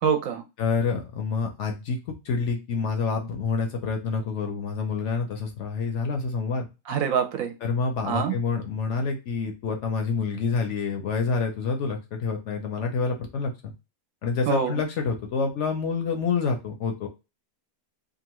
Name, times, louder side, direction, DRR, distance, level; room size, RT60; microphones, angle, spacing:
voice 1, 0.0-0.4 6.9-7.5 8.0-8.4 14.5-14.8, right 7 dB, 70° right, 5 dB, 1.0 m, -25 dB
voice 2, 0.6-6.7 7.6-13.7 14.2-17.1, left 4 dB, 65° left, 3 dB, 0.8 m, -27 dB
2.8 x 2.4 x 2.9 m, 0.27 s
omnidirectional pair, 1.6 m